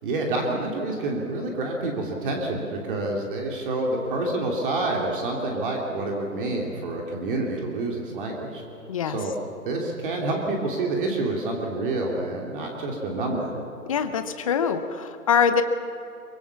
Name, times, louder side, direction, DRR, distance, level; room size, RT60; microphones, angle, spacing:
voice 1, 0.0-8.6 9.0-9.3 9.7-13.5, right 2 dB, 35° right, 0 dB, 3.0 m, -28 dB
voice 2, 13.9-15.6, left 7 dB, 20° left, 9 dB, 0.8 m, -23 dB
24.0 x 23.5 x 7.2 m, 3.0 s
hypercardioid pair, 150°, 47 cm